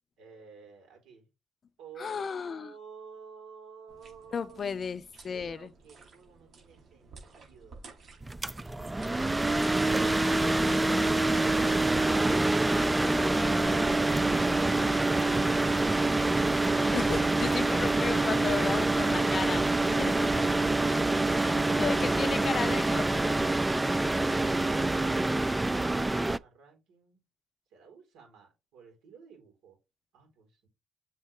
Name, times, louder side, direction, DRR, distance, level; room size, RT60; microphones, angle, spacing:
voice 1, 0.2-1.3 1.8-4.7 5.3-7.8 25.1-27.2 27.7-29.8 30.1-30.7, right 5 dB, 90° right, 4.0 m, -53 dB
voice 2, 2.0-2.7 4.3-5.7 11.6-12.9 16.9-19.6 20.0-20.5 21.4-23.3, left 6 dB, 45° left, 0.5 m, -35 dB
sound 1, 3.9-13.7, right 4 dB, 60° right, 4.5 m, -54 dB
sound 2, 8.2-26.4, right 2 dB, 15° right, 0.3 m, -26 dB
7.5 x 4.6 x 3.3 m
cardioid pair, 90°, 0 cm